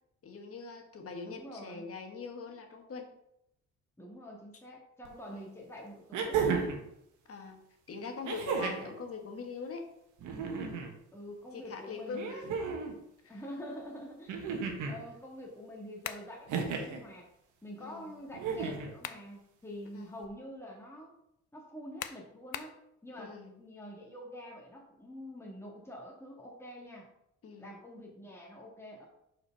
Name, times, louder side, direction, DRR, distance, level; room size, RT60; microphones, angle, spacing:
voice 1, 0.2-3.1 5.3-5.5 7.3-7.6 7.9-9.9 11.5-12.5 13.2-13.4 17.8-18.1 19.9-20.2 23.2-23.5 27.4-27.7, left 5 dB, 50° left, 4 dB, 1.5 m, -43 dB
voice 2, 1.2-1.9 4.0-6.8 8.4-8.6 11.1-12.8 13.3-17.3 17.6-21.1 21.5-27.1 27.6-29.1, equal, 10° left, -2 dB, 1.6 m, -46 dB
sound 1, 5.0-5.1 6.1-6.8 8.2-8.9 10.2-10.9 12.1-12.9 14.3-15.0 16.5-17.0 18.3-18.9 20.2-20.3, right 5 dB, 85° right, 1.3 m, -33 dB
sound 2, 16.0-16.3 18.7-19.3 19.8-19.9 22.0-22.8, left 11 dB, 75° left, 0.6 m, -41 dB
5.0 x 4.7 x 5.7 m, 0.80 s
cardioid pair, 90°, 30 cm